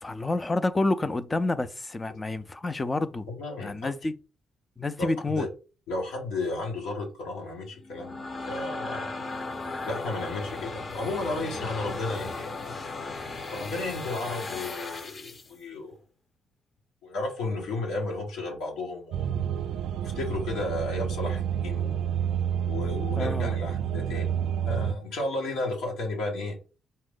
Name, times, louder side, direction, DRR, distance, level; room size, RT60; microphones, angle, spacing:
voice 1, 0.0-3.3 3.6-4.1 4.8-5.5 23.2-23.5, left 2 dB, 20° left, 0.5 m, -28 dB
voice 2, 3.3-3.9 5.0-5.5 5.9-8.2 8.5-9.1 9.9-12.5 13.5-16.0 17.0-19.3 19.9-22.0 22.7-24.3 24.7-26.6, left 2 dB, 90° left, 1.6 m, -33 dB
sound 1, 7.8-15.5, left 3 dB, 40° left, 0.8 m, -36 dB
sound 2, 19.1-24.9, right 9 dB, 80° right, 0.3 m, -29 dB
5.3 x 2.6 x 3.7 m
cardioid pair, 90°, 0 cm